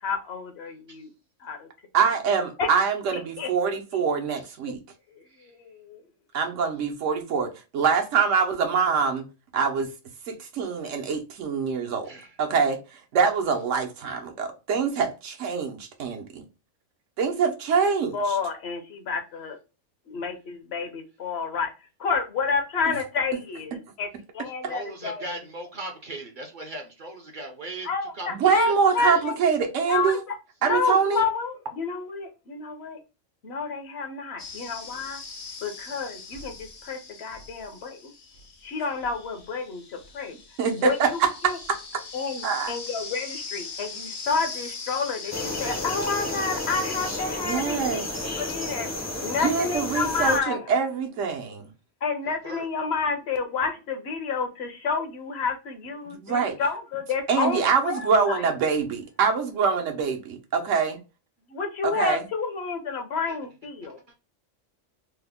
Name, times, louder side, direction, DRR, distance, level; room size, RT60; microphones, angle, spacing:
voice 1, 0.0-1.1 1.4-1.7 2.6-2.7 3.4-3.5 5.2-6.0 18.1-19.6 20.1-21.7 22.0-24.1 24.3-25.4 27.8-29.3 29.9-30.4 30.6-33.0 33.4-35.2 35.6-38.1 38.6-39.8 40.1-40.3 40.7-41.6 42.1-48.0 48.4-50.6 52.0-58.4 61.5-64.0, left 4 dB, 65° left, 0.9 m, -29 dB
voice 2, 1.9-4.8 6.3-9.2 9.5-9.9 10.3-12.1 12.4-12.8 13.1-16.4 17.2-18.4 28.3-30.2 30.6-31.2 40.6-41.8 42.4-42.7 47.4-48.0 49.4-51.6 56.1-56.6 57.3-61.0 61.8-62.2, right 6 dB, 80° right, 1.1 m, -24 dB
voice 3, 24.6-27.9 28.1-28.7 29.0-29.3 52.4-52.7 63.3-63.4, right 2 dB, 55° right, 0.6 m, -38 dB
sound 1, 34.4-47.2, left 4 dB, 85° left, 1.1 m, -40 dB
sound 2, 45.3-50.4, left 2 dB, 25° left, 0.4 m, -32 dB
3.3 x 2.0 x 3.5 m
omnidirectional pair, 1.3 m